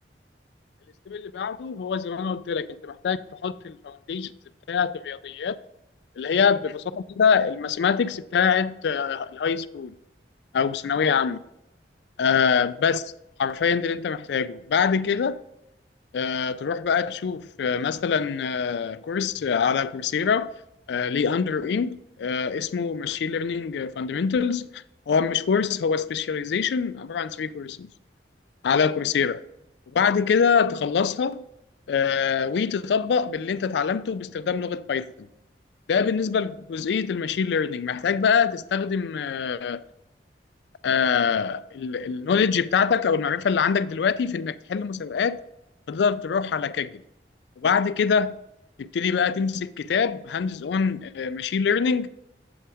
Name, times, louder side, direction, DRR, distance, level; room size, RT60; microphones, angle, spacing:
voice 1, 1.1-4.3 4.7-5.6 6.2-10.0 10.5-11.4 12.2-13.0 13.4-15.4 16.1-20.5 20.9-27.9 28.6-29.4 29.9-31.4 31.9-35.3 35.9-39.8 40.8-45.4 45.9-47.0 47.6-48.4 48.8-52.1, left 6 dB, 75° left, 0.3 m, -24 dB
7.3 x 5.6 x 3.5 m
head